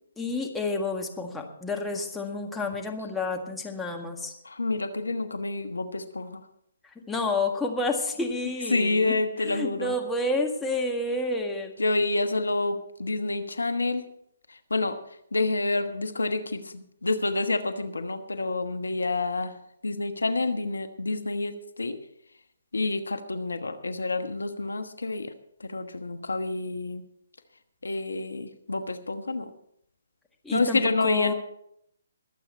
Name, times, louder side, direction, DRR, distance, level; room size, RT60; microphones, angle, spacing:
voice 1, 0.2-4.3 7.1-9.1 9.4-11.7 30.4-31.3, left 2 dB, 5° left, 1 dB, 1.8 m, -29 dB
voice 2, 4.4-6.4 8.7-9.9 11.8-14.0 14.5-15.0 15.3-19.6 19.8-22.0 22.7-25.3 25.6-27.0 27.8-29.5 30.5-31.3, left 2 dB, 80° left, 10 dB, 1.2 m, -28 dB
22.0 x 8.2 x 4.4 m, 0.73 s
figure-of-eight pair, 140°, 0 cm